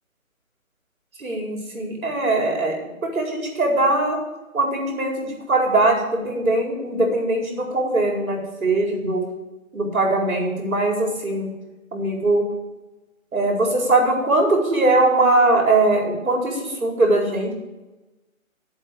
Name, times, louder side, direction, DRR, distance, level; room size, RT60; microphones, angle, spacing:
voice 1, 1.2-2.7 3.0-4.2 4.5-9.2 9.7-11.5 11.9-12.4 13.3-17.5, right 2 dB, 80° right, 0 dB, 4.7 m, -21 dB
11.5 x 8.0 x 6.4 m, 1.1 s
hypercardioid pair, 165°, 42 cm